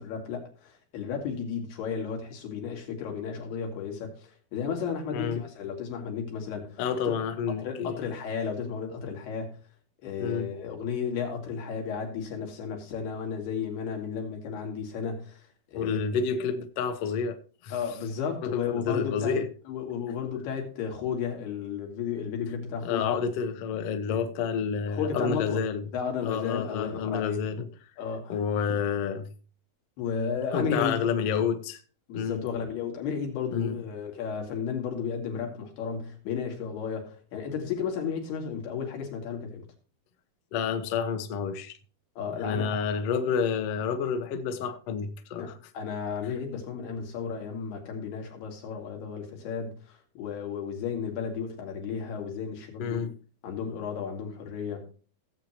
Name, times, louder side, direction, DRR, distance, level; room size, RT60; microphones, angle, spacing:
voice 1, 0.0-4.1 4.5-7.2 7.6-9.6 10.0-15.4 15.7-16.0 17.7-19.4 19.7-23.1 24.1-24.2 24.9-25.6 25.9-27.4 28.0-28.4 30.0-31.0 32.1-39.7 42.2-42.7 43.1-43.2 45.4-53.0 53.4-54.8, left 6 dB, 90° left, 4.5 m, -33 dB
voice 2, 6.8-8.0 10.2-10.5 15.7-17.8 18.4-19.5 22.8-25.8 26.2-27.7 28.3-29.3 30.5-31.8 32.1-32.4 33.5-33.8 40.5-41.7 42.4-45.5 52.8-53.1, left 6 dB, 70° left, 1.4 m, -29 dB
16.5 x 8.0 x 2.9 m
omnidirectional pair, 4.5 m